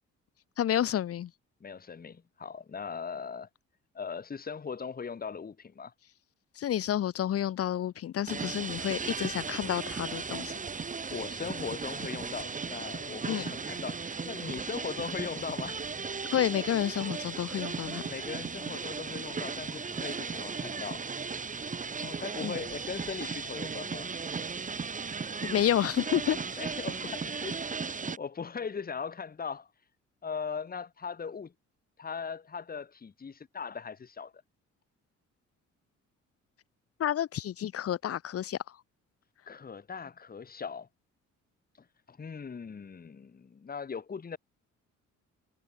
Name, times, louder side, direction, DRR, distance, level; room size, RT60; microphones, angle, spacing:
voice 1, 0.6-1.3 6.6-10.5 13.2-13.5 16.3-18.0 22.4-22.6 25.4-26.4 37.0-38.6, left 11 dB, 50° left, 0.7 m, -30 dB
voice 2, 1.6-3.5 3.9-5.9 11.1-15.8 18.1-21.0 22.0-24.1 26.6-29.7 30.2-31.5 32.0-34.3 39.5-40.9 42.1-44.4, left 6 dB, 30° left, 1.5 m, -39 dB
sound 1, 8.3-28.2, right 5 dB, 25° right, 1.1 m, -36 dB
cardioid pair, 90°, 30 cm